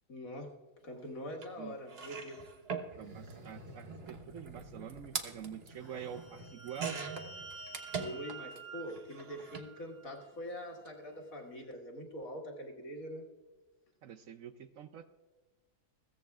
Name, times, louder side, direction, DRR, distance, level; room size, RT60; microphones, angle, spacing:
voice 1, 0.1-0.5 0.8-2.4 8.0-13.3, equal, 60° left, 1 dB, 2.2 m, -44 dB
sound 1, 1.4-1.5 1.9-8.6 8.9-9.7 10.7-10.9 11.1-11.2, right 5 dB, 45° right, 1.2 m, -43 dB
voice 2, 2.9-7.0 14.0-15.1, right 8 dB, 65° right, 9 dB, 0.9 m, -46 dB
sound 2, 3.0-5.4 5.7-6.3, equal, 85° right, 3.0 m, -62 dB
sound 3, 5.9-10.3, right 4 dB, 85° left, 2.6 m, -50 dB
21.5 x 16.0 x 2.4 m, 1.2 s
omnidirectional pair, 1.7 m